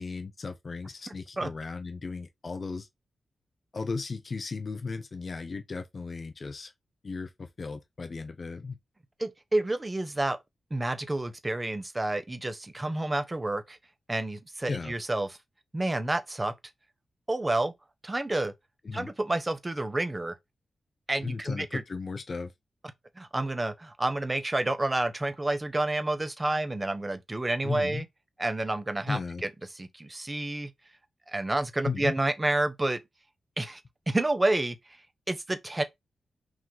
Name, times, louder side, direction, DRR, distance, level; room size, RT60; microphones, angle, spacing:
voice 1, 0.0-2.9 3.7-6.7 7.0-8.8 14.7-14.9 18.8-19.1 21.2-22.5 27.6-28.0 29.1-29.4 31.8-32.1, left 4 dB, 50° left, 0.7 m, -35 dB
voice 2, 9.2-10.4 10.7-13.8 14.1-15.3 15.7-16.5 17.3-17.7 18.0-18.5 18.9-20.3 21.1-21.8 23.2-28.0 28.4-29.5 29.8-30.7 31.3-33.0 33.6-33.8 34.1-34.8 35.3-35.8, right 2 dB, 25° right, 1.0 m, -29 dB
4.8 x 2.9 x 3.8 m
cardioid pair, 55°, 0 cm